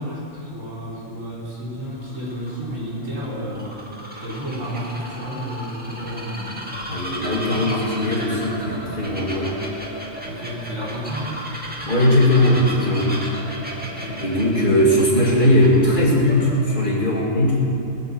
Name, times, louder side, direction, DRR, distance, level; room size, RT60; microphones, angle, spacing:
voice 1, 0.0-3.8 4.2-6.7 10.2-11.4 13.8-14.2, equal, 70° right, -6 dB, 4.2 m, -31 dB
Bird vocalization bird call bird song, 1.8-16.9, equal, 5° right, 1.8 m, -35 dB
voice 2, 6.9-9.6 11.9-13.2 14.1-17.6, left 1 dB, 40° left, -4 dB, 2.7 m, -19 dB
20.0 x 7.9 x 7.2 m, 2.7 s
omnidirectional pair, 1.4 m